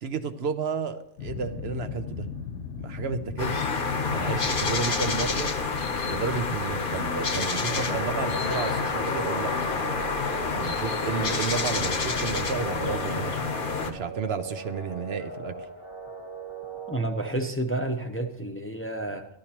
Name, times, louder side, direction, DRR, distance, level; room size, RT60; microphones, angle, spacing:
voice 1, 0.0-2.3 2.8-3.7 4.1-5.5 6.1-9.5 10.5-13.4 13.9-15.5, right 5 dB, 65° right, 9 dB, 0.9 m, -32 dB
sound 1, 1.2-8.8, left 6 dB, 80° left, 1.3 m, -39 dB
sound 2, 3.4-13.9, left 4 dB, 50° left, 1.1 m, -28 dB
sound 3, 6.9-17.0, right 4 dB, 25° right, 1.3 m, -40 dB
voice 2, 16.9-19.3, right 2 dB, 15° left, 3 dB, 0.7 m, -30 dB
14.0 x 11.5 x 2.9 m, 0.75 s
omnidirectional pair, 1.2 m